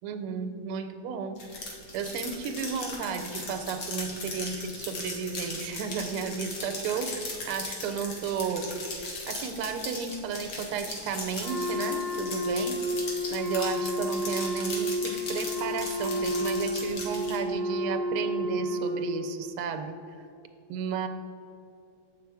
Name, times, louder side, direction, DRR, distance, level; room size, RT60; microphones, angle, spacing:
voice 1, 0.0-8.7 9.3-12.8 13.3-19.9 20.7-21.1, right 6 dB, 90° right, 7 dB, 1.5 m, -33 dB
sound 1, 1.4-17.4, left 2 dB, 55° left, 1.8 m, -38 dB
Wind instrument woodwind instrument, 11.4-19.3, equal, 85° left, 2.9 m, -31 dB
7.9 x 5.6 x 4.7 m, 2.7 s
omnidirectional pair, 2.4 m